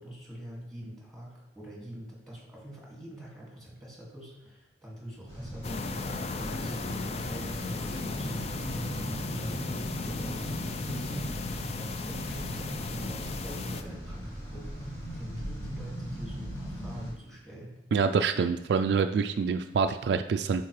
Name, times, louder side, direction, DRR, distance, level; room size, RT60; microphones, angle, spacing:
voice 1, 0.0-9.6 10.0-17.7, right 1 dB, ahead, -4 dB, 2.1 m, -45 dB
sound 1, 5.3-17.1, right 1 dB, 20° left, 1.6 m, -38 dB
sound 2, 5.6-13.8, left 4 dB, 35° left, 0.4 m, -36 dB
voice 2, 17.9-20.7, right 5 dB, 65° right, 8 dB, 0.3 m, -26 dB
10.5 x 4.4 x 3.2 m, 0.95 s
head